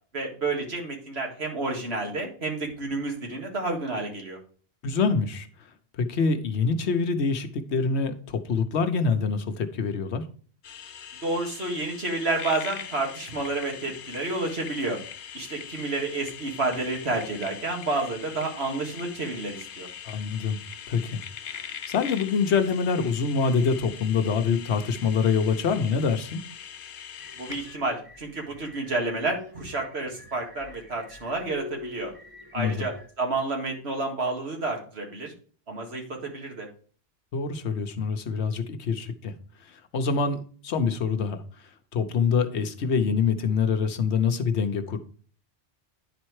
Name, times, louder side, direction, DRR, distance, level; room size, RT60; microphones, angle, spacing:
voice 1, 0.1-4.4 11.2-15.0 15.3-19.9 27.4-32.1 32.5-32.9 33.2-35.3 35.7-36.7, right 3 dB, 70° right, 1 dB, 2.2 m, -30 dB
voice 2, 4.8-5.5 5.9-10.2 20.0-20.6 20.9-26.4 32.5-32.9 37.3-39.3 39.6-41.4 41.9-45.0, left 5 dB, 85° left, 8 dB, 1.1 m, -25 dB
sound 1, 10.6-27.8, left 9 dB, 55° left, 0.8 m, -42 dB
sound 2, 27.2-33.1, left 3 dB, 20° right, 1.0 m, -45 dB
9.9 x 4.3 x 4.7 m, 0.43 s
omnidirectional pair, 1.1 m